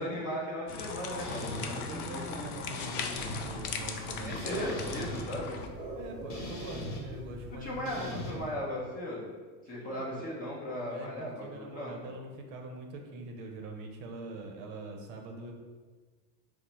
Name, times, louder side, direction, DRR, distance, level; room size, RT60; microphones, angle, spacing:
voice 1, 0.0-2.5 4.2-5.6 7.6-9.3 9.6-12.1, left 1 dB, 20° left, -5 dB, 0.6 m, -37 dB
sound 1, 0.7-5.7, left 5 dB, 85° left, 0.5 m, -39 dB
voice 2, 1.0-5.3 5.9-8.6 9.7-10.3 10.9-15.5, right 2 dB, 65° right, 3 dB, 0.6 m, -43 dB
sound 2, 1.2-1.7 2.7-3.5 4.3-5.2 6.3-7.0 7.9-8.3, left 1 dB, 55° left, 0.9 m, -40 dB
sound 3, 3.1-8.5, right 1 dB, 10° right, 0.8 m, -44 dB
4.0 x 2.0 x 3.0 m, 1.4 s
supercardioid pair, 130°, 44 cm